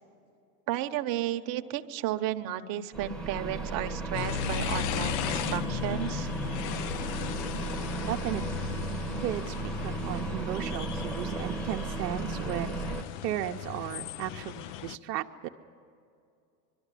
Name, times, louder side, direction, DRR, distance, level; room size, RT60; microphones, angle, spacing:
voice 1, 0.7-6.3, right 12 dB, 45° right, 7 dB, 1.1 m, -33 dB
sound 1, 2.9-13.0, right 3 dB, ahead, 1.0 m, -35 dB
sound 2, 4.1-15.0, left 11 dB, 45° left, 0.5 m, -36 dB
voice 2, 8.1-8.8 9.2-12.8 13.2-15.5, right 13 dB, 80° right, 3 dB, 0.9 m, -35 dB
22.0 x 13.0 x 9.9 m, 2.4 s
supercardioid pair, 125°, 47 cm